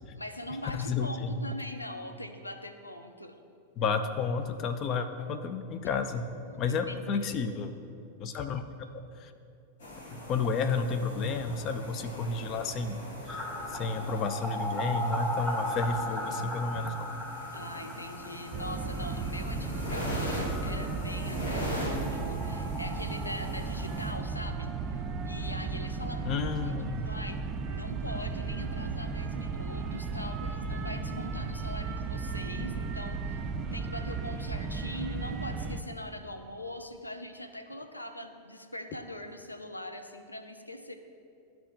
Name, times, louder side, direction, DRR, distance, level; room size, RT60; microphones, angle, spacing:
voice 1, 0.2-3.3 5.8-5.9 6.1-7.3 17.5-25.0 25.2-26.5 27.0-27.4 27.7-40.9, left 1 dB, 85° left, 5 dB, 0.5 m, -42 dB
voice 2, 0.7-1.4 3.8-6.3 6.6-7.7 8.2-8.6 8.9-9.3 10.1-17.2 26.2-27.1, left 4 dB, 35° left, 8 dB, 0.5 m, -31 dB
sound 1, 9.8-24.1, equal, 60° left, 1.7 m, -40 dB
sound 2, 13.3-24.9 25.2-25.3 25.5-25.6 28.6-28.7 29.0-29.1 29.3-31.1 31.4-31.5, left 1 dB, 5° left, 1.0 m, -39 dB
sound 3, 18.5-35.8, right 4 dB, 30° right, 0.4 m, -35 dB
13.0 x 4.6 x 2.6 m, 2.5 s
figure-of-eight pair, 90°, 0 cm